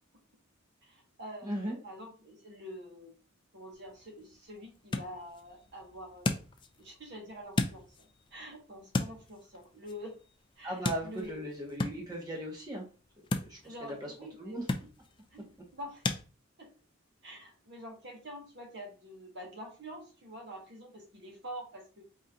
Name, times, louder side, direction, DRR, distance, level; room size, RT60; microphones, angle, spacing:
voice 1, 0.8-3.2 3.5-6.3 6.8-10.1 10.6-11.5 13.6-14.6 15.3-16.1 16.6-16.7 17.2-22.0, equal, 55° right, 1 dB, 1.3 m, -46 dB
voice 2, 1.4-1.8 10.6-12.9 13.4-14.1 14.4-14.6, right 1 dB, 20° right, -1 dB, 1.2 m, -37 dB
sound 1, 3.7-16.2, left 2 dB, 25° left, 0.3 m, -38 dB
4.2 x 2.7 x 3.7 m, 0.35 s
head